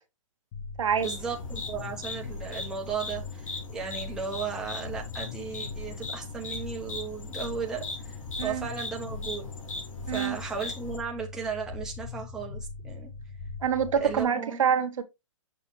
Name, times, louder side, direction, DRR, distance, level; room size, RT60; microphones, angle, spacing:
sound 1, 0.5-14.2, left 4 dB, 30° left, 1.2 m, -41 dB
sound 2, 1.0-11.0, left 3 dB, 80° left, 3.0 m, -40 dB
voice 1, 1.0-9.5 10.1-13.1 14.0-14.6, right 6 dB, 5° right, 0.9 m, -35 dB
voice 2, 10.1-10.4 13.6-15.0, right 7 dB, 75° right, 1.3 m, -26 dB
6.5 x 5.5 x 3.1 m
hypercardioid pair, 160°, 17 cm